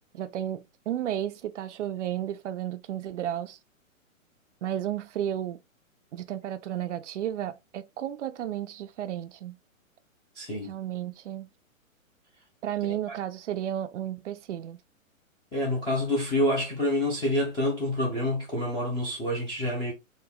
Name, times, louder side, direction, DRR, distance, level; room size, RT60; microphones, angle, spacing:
voice 1, 0.1-3.6 4.6-5.6 6.1-9.6 10.6-11.5 12.6-14.8, right 11 dB, 60° right, 0.5 m, -33 dB
voice 2, 10.3-10.7 12.9-13.1 15.5-19.9, left 1 dB, 10° left, 0.5 m, -27 dB
3.7 x 2.2 x 3.4 m
hypercardioid pair, 130°, 41 cm